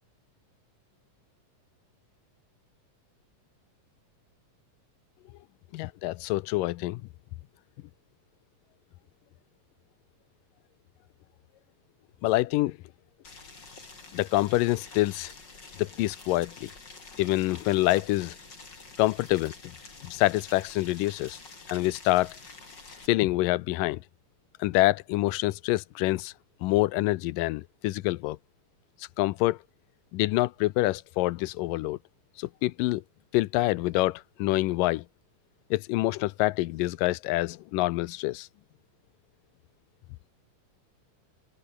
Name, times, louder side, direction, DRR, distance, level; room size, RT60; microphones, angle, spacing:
voice 1, 5.7-7.0 12.2-12.8 14.1-15.3 15.8-16.7 17.2-18.4 19.0-19.5 20.0-21.4 21.7-22.4 23.1-24.0 24.6-26.3 26.6-28.4 29.2-29.6 30.1-32.0 32.4-33.0 33.3-35.0 35.7-38.5, left 18 dB, 85° left, 2.3 m, -26 dB
Boiling, 13.2-23.1, left 3 dB, 30° left, 4.6 m, -48 dB
open air
omnidirectional pair, 3.9 m